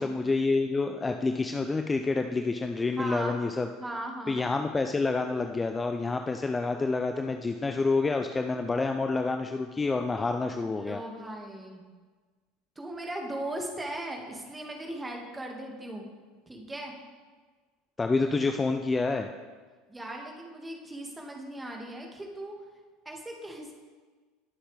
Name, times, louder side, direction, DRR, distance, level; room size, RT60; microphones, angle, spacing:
voice 1, 0.0-3.7 4.3-11.0 18.0-19.3, left 3 dB, 20° left, 6 dB, 0.6 m, -28 dB
voice 2, 3.0-3.4 3.8-4.5 10.7-11.8 12.8-16.0 16.5-16.9 19.9-22.5 23.1-23.7, right 1 dB, 15° right, 1 dB, 2.1 m, -38 dB
20.0 x 7.1 x 3.5 m, 1.4 s
figure-of-eight pair, 70°, 0 cm